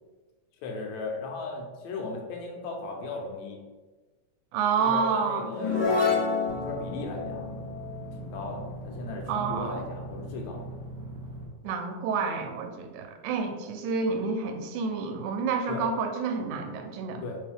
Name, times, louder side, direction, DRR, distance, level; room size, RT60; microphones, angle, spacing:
voice 1, 0.6-3.6 4.8-7.7 8.1-10.8 15.7-15.8 17.2-17.4, left 3 dB, 75° left, 1 dB, 1.9 m, -37 dB
voice 2, 4.5-5.5 9.3-9.8 11.6-17.2, right 5 dB, 85° right, 6 dB, 2.0 m, -29 dB
sound 1, 5.5-9.1, left 4 dB, 55° left, 1.1 m, -29 dB
sound 2, 6.5-11.5, right 2 dB, 45° right, 1.2 m, -40 dB
4.6 x 3.1 x 3.4 m, 1.3 s
omnidirectional pair, 3.4 m